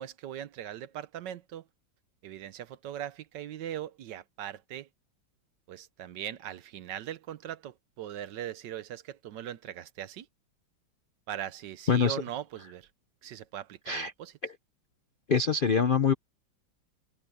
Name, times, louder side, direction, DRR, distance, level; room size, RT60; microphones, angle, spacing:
voice 1, 0.0-1.6 2.2-4.9 5.7-10.3 11.3-12.9 13.2-14.3, right 11 dB, 70° right, 1.3 m, -40 dB
voice 2, 15.3-16.1, left 6 dB, 65° left, 0.5 m, -24 dB
omnidirectional pair, 2.1 m